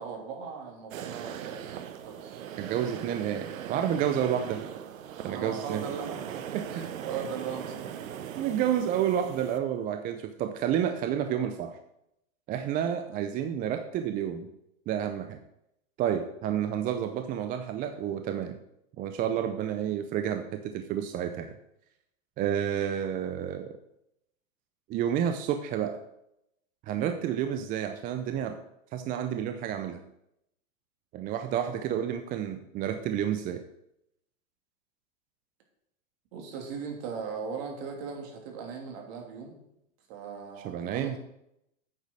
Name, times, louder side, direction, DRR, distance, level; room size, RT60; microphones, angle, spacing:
voice 1, 0.0-2.4 5.2-7.9 36.3-39.6 40.1-41.2, right 6 dB, 50° right, 2 dB, 2.9 m, -39 dB
sound 1, 0.9-9.6, right 9 dB, 80° right, 1.1 m, -40 dB
voice 2, 2.6-4.6 5.2-5.8 6.5-6.8 8.4-11.7 12.5-14.5 14.9-15.4 16.0-18.6 19.0-21.5 22.4-23.8 24.9-26.0 26.9-28.6 28.9-30.0 31.1-33.6 40.6-41.2, right 9 dB, 20° right, 8 dB, 0.5 m, -30 dB
8.6 x 6.4 x 6.3 m, 0.82 s
hypercardioid pair, 130°, 40 cm